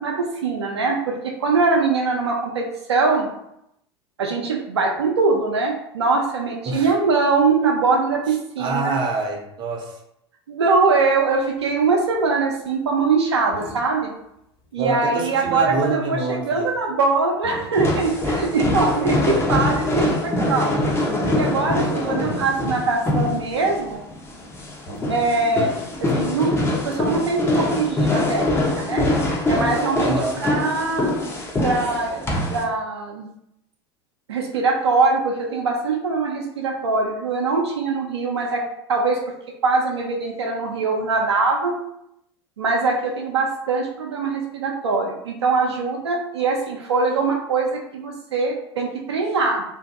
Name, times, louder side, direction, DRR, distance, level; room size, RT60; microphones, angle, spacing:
voice 1, 0.0-3.3 4.2-9.0 10.5-14.1 14.7-20.1 20.4-20.8 21.2-24.0 25.1-25.7 26.0-29.1 29.5-30.1 30.4-31.2 31.6-33.3 34.3-38.6 38.9-39.2 39.6-41.7 42.6-49.6, right 4 dB, 75° right, 0 dB, 0.5 m, -22 dB
voice 2, 8.6-10.0 14.8-16.7 21.9-22.5 30.0-30.4, right 3 dB, 35° right, 1 dB, 0.6 m, -26 dB
sound 1, 11.4-12.4 12.8-20.4 20.7-21.3 21.5-26.7, equal, 40° left, 1.3 m, -41 dB
sound 2, 17.7-32.6, left 1 dB, 15° left, 0.6 m, -23 dB
2.6 x 2.5 x 2.4 m, 0.79 s
figure-of-eight pair, 80°, 14 cm